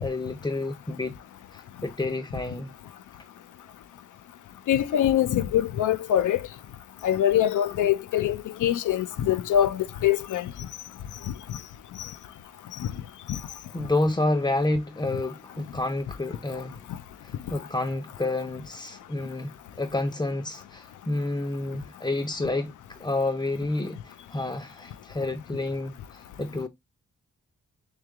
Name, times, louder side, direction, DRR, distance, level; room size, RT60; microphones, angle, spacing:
voice 1, 0.0-1.2 1.5-2.7 13.7-16.8 17.2-26.7, left 2 dB, 15° left, 0.5 m, -29 dB
voice 2, 4.7-6.4 7.0-10.5 12.0-12.1 12.8-12.9 13.3-13.4, left 11 dB, 80° left, 0.5 m, -24 dB
3.2 x 3.2 x 3.5 m
cardioid pair, 55°, 30 cm